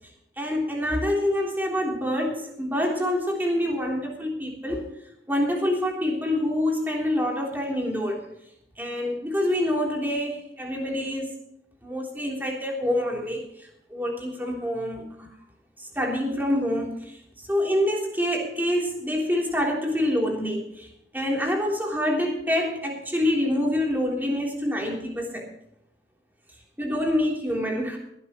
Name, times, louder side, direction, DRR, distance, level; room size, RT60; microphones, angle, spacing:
voice 1, 0.4-4.9 5.3-8.2 8.8-11.3 11.8-15.3 15.8-20.9 21.1-25.5 26.8-28.0, left 1 dB, 10° right, 0 dB, 3.4 m, -26 dB
20.5 x 12.0 x 3.1 m, 0.77 s
head